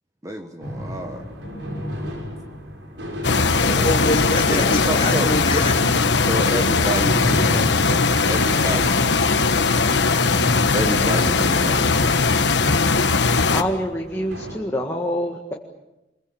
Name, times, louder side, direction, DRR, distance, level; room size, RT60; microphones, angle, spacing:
voice 1, 0.2-1.2 4.5-5.3 6.3-9.0 10.7-11.9, equal, 20° right, 4 dB, 1.4 m, -28 dB
sound 1, 0.6-14.6, equal, 90° right, 5.4 m, -35 dB
sound 2, 3.2-13.6, left 4 dB, 75° left, 1.2 m, -19 dB
voice 2, 3.6-6.0, left 1 dB, 30° left, -2 dB, 5.4 m, -25 dB
voice 3, 13.5-15.5, equal, 15° left, 0 dB, 1.9 m, -26 dB
26.5 x 23.0 x 7.2 m, 0.97 s
head